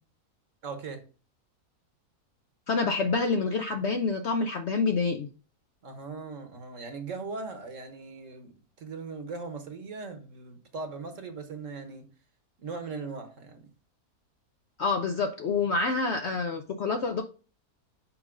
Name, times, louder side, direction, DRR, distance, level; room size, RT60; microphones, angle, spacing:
voice 1, 0.6-1.0 5.8-8.5 8.8-12.0 12.6-13.7, right 4 dB, 55° right, 1.4 m, -39 dB
voice 2, 2.7-5.3 14.8-17.2, left 4 dB, 65° left, 0.7 m, -27 dB
6.0 x 5.2 x 3.7 m
omnidirectional pair, 1.7 m